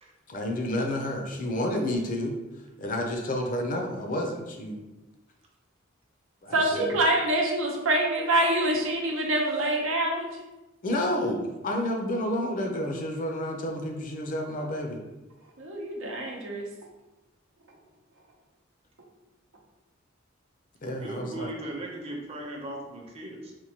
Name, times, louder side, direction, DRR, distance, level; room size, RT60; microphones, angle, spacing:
voice 1, 0.3-2.4 2.8-4.8 6.4-7.0 10.8-15.0 20.8-21.5, left 1 dB, 45° left, 2 dB, 0.5 m, -30 dB
voice 2, 6.5-10.3 15.6-16.7, right 1 dB, 85° right, 0 dB, 0.7 m, -25 dB
voice 3, 21.0-23.5, right 1 dB, 30° right, -1 dB, 0.6 m, -38 dB
4.4 x 2.2 x 2.8 m, 1.0 s
head